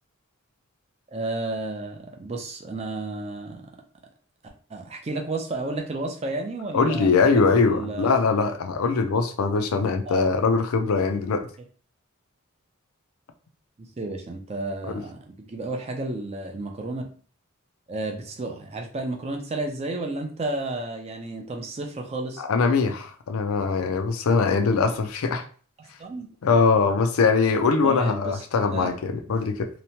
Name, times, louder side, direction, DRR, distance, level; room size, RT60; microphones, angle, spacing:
voice 1, 1.1-3.6 4.7-8.1 10.1-10.3 13.8-17.1 17.9-22.4 25.8-26.3 27.8-28.4 28.7-28.9, right 2 dB, 30° right, 3 dB, 0.4 m, -32 dB
voice 2, 6.7-11.5 14.9-15.0 22.4-25.4 26.4-29.7, left 4 dB, 80° left, 7 dB, 0.4 m, -22 dB
2.9 x 2.1 x 2.8 m, 0.42 s
head